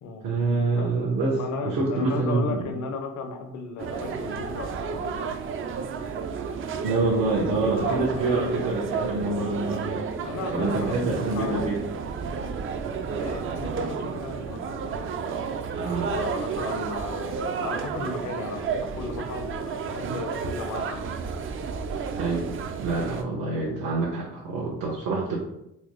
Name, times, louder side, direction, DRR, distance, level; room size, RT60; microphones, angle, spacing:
voice 1, 0.2-2.6 6.8-9.9 10.5-11.8 15.7-16.1 22.1-22.5 22.8-25.4, right 3 dB, 75° right, -4 dB, 1.0 m, -26 dB
voice 2, 1.3-5.4 7.8-8.6 10.2-11.6 13.0-15.4 16.0-21.1, left 4 dB, 70° left, 5 dB, 0.7 m, -35 dB
sound 1, 3.8-23.2, right 5 dB, 45° right, 0.4 m, -31 dB
4.3 x 2.2 x 3.1 m, 0.82 s
cardioid pair, 110°, 31 cm